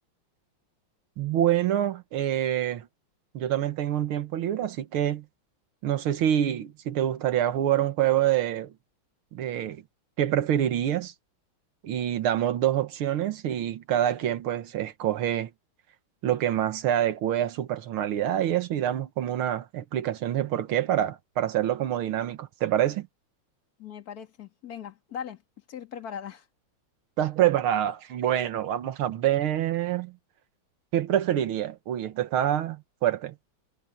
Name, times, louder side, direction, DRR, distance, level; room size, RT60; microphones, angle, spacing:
voice 1, 1.2-2.9 3.3-5.3 5.8-8.7 9.3-9.8 10.2-11.1 11.8-15.5 16.2-23.1 27.2-30.1 30.9-33.4, right 11 dB, 85° right, 2.0 m, -26 dB
voice 2, 23.8-25.4 25.7-26.5, left 8 dB, 45° left, 2.5 m, -39 dB
omnidirectional pair, 2.3 m